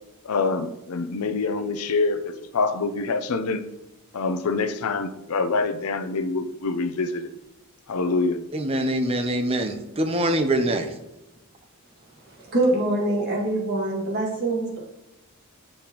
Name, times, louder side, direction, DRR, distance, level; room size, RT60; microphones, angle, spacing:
voice 1, 0.2-3.6 4.1-7.3 7.9-8.4, left 3 dB, 75° left, 10 dB, 0.5 m, -25 dB
voice 2, 8.5-10.9, right 1 dB, 25° right, 6 dB, 0.6 m, -24 dB
voice 3, 12.5-14.8, right 2 dB, 45° right, -3 dB, 1.9 m, -24 dB
6.7 x 5.4 x 3.0 m, 0.95 s
head